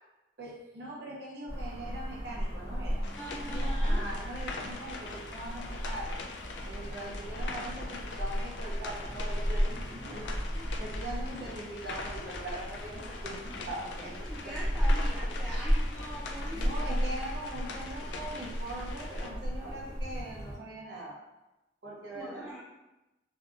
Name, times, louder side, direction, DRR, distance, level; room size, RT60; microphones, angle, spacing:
voice 1, 0.4-3.1 3.5-6.2 6.6-13.4 13.7-14.5 16.5-21.2 21.8-22.6, right 1 dB, 70° right, -3 dB, 0.7 m, -41 dB
sound 1, 1.5-20.5, equal, 15° left, 0.8 m, -34 dB
sound 2, 3.0-19.3, left 3 dB, 85° left, 0.3 m, -43 dB
voice 2, 3.2-4.0 13.5-13.6 14.0-16.8 22.1-22.6, equal, ahead, -11 dB, 0.4 m, -42 dB
2.7 x 2.2 x 2.4 m, 1.0 s
head